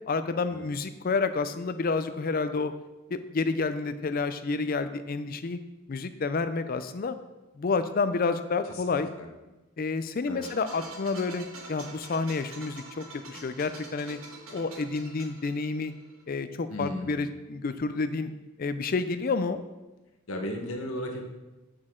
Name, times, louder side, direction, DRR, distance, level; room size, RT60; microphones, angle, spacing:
voice 1, 0.1-2.7 3.1-5.6 5.9-7.2 7.6-9.2 9.8-14.2 14.5-15.9 16.3-18.3 18.6-19.6, left 4 dB, 40° left, 11 dB, 0.4 m, -29 dB
voice 2, 8.7-9.3 10.3-10.5 16.7-17.3 20.3-21.3, left 1 dB, 70° left, 2 dB, 1.2 m, -35 dB
sound 1, 10.4-16.2, right 2 dB, 75° right, 1.5 m, -46 dB
8.4 x 6.2 x 3.7 m, 1.1 s
head